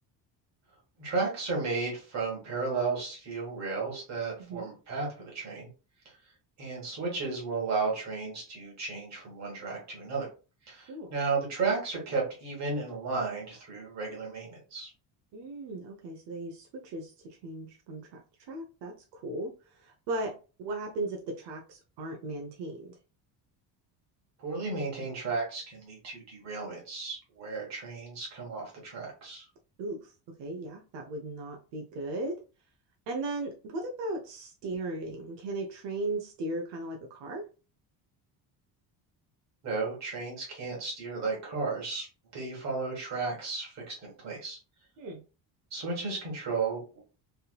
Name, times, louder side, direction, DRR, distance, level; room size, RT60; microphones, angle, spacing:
voice 1, 1.0-5.7 6.6-10.3 10.7-14.9 24.4-29.4 39.6-42.1 42.3-44.6 45.7-47.0, right 4 dB, 40° right, -2 dB, 1.7 m, -34 dB
voice 2, 4.4-4.7 10.9-11.1 15.3-18.2 18.5-19.5 19.8-23.0 29.8-32.4 33.1-37.5 45.0-45.2, right 2 dB, 90° right, 1 dB, 0.9 m, -37 dB
3.6 x 2.9 x 2.3 m, 0.33 s
cardioid pair, 180°, 40 cm